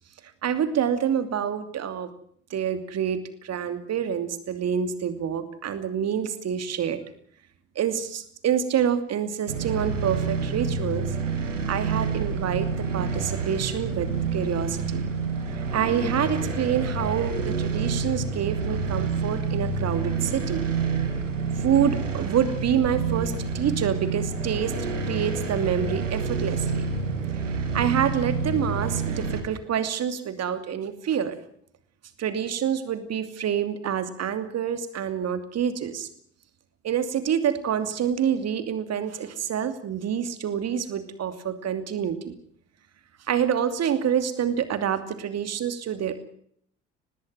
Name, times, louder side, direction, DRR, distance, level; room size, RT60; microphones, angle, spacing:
voice 1, 0.4-2.1 2.5-3.2 3.4-7.0 7.8-11.1 11.7-15.0 15.7-20.7 21.6-24.7 25.0-26.8 27.7-31.4 32.2-36.1 36.8-42.4 43.3-46.3, right 8 dB, 45° right, 10 dB, 2.7 m, -27 dB
sound 1, 9.5-29.4, right 4 dB, 80° right, 2.4 m, -28 dB
19.5 x 16.5 x 9.6 m, 0.64 s
figure-of-eight pair, 50°, 37 cm